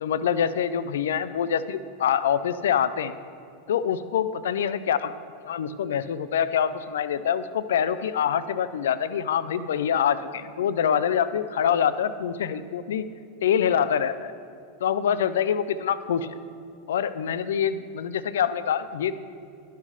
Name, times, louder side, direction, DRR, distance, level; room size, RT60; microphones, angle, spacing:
voice 1, 0.0-3.2 3.7-5.1 5.4-13.1 13.4-14.3 14.8-16.3 16.9-19.1, left 8 dB, 75° left, 14 dB, 0.4 m, -25 dB
11.0 x 5.0 x 5.6 m, 2.4 s
hypercardioid pair, 95°, 0 cm